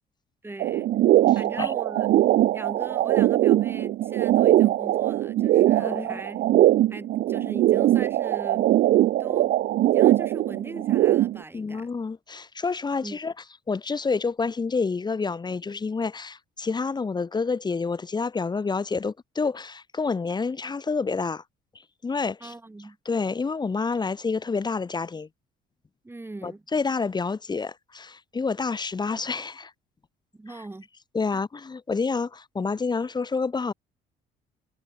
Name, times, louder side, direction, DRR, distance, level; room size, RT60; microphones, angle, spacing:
voice 1, 0.4-1.0 1.3-2.1 2.5-6.4 6.9-8.7 9.2-9.5 9.8-11.9 13.0-13.2 22.4-23.0 26.0-26.6 30.3-30.9 31.3-31.4, right 2 dB, 15° right, 6.7 m, -40 dB
sound 1, 0.6-11.4, right 14 dB, 65° right, 1.1 m, -21 dB
voice 2, 5.8-6.2 11.5-13.3 13.7-21.4 22.0-22.5 23.1-25.3 26.4-29.7 31.1-33.7, left 4 dB, 25° left, 3.5 m, -28 dB
cardioid pair, 110°, 17 cm